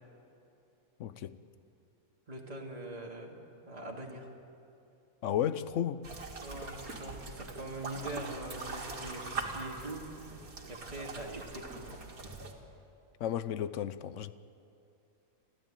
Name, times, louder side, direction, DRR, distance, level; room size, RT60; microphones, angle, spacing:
voice 1, 1.0-1.3 5.2-6.0 13.2-14.3, left 10 dB, 65° left, 14 dB, 1.0 m, -33 dB
voice 2, 2.3-4.3 6.4-10.0 10.3-10.4 10.7-12.0, right 1 dB, 25° right, -1 dB, 2.6 m, -43 dB
sound 1, 6.0-12.5, right 3 dB, 75° right, 2.6 m, -42 dB
30.0 x 12.0 x 9.0 m, 2.6 s
omnidirectional pair, 1.5 m